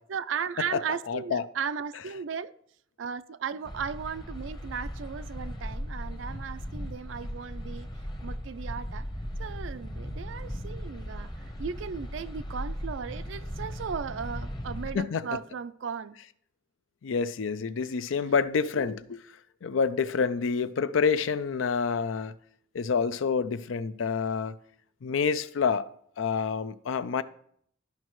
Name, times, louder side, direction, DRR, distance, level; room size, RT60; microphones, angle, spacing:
voice 1, 0.1-2.5 3.0-7.9 8.2-9.1 9.4-16.2, right 6 dB, 75° right, 0.4 m, -36 dB
voice 2, 1.1-1.4 14.9-15.2 17.0-19.2 19.6-22.3 22.7-24.5 25.0-25.9 26.2-27.2, left 5 dB, 90° left, 0.4 m, -27 dB
sound 1, 3.6-15.0, equal, 20° left, 0.8 m, -37 dB
13.0 x 5.3 x 3.1 m
head